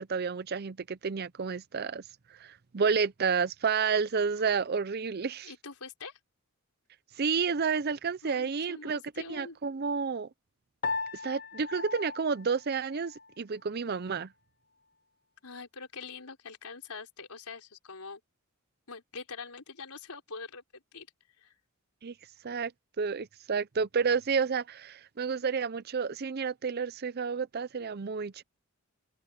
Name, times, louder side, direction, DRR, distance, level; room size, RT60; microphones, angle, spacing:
voice 1, 0.0-2.0 2.4-5.5 7.2-9.0 9.3-10.3 11.2-14.3 22.0-22.1 22.4-22.7 23.0-28.4, right 5 dB, 45° right, 0.5 m, -30 dB
voice 2, 5.4-6.2 8.2-9.6 15.4-18.2 18.9-21.1 21.4-21.5, left 4 dB, 85° left, 4.1 m, -44 dB
Piano, 10.8-13.4, left 3 dB, 40° left, 0.6 m, -37 dB
open air
head